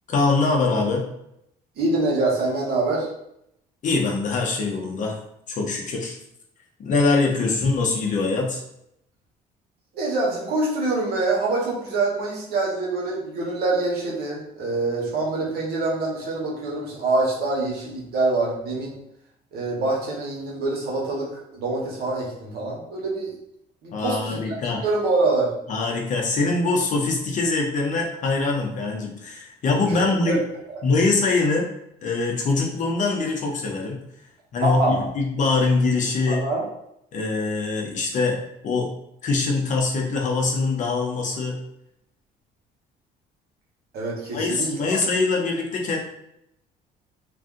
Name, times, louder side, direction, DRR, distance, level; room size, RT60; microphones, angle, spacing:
voice 1, 0.1-1.0 3.8-5.2 5.5-6.2 6.8-8.6 23.9-24.8 25.7-30.4 30.8-31.7 32.0-34.0 34.5-36.4 37.1-38.9 39.2-41.6 44.3-46.0, left 3 dB, 50° left, 1 dB, 0.7 m, -23 dB
voice 2, 1.8-3.1 9.9-18.9 19.5-23.3 23.8-24.4 24.8-25.5 30.0-30.4 30.7-30.8 34.6-35.0 36.3-36.7 43.9-45.0, right 2 dB, 70° right, -3 dB, 1.1 m, -25 dB
2.6 x 2.4 x 3.6 m, 0.78 s
cardioid pair, 110°, 17 cm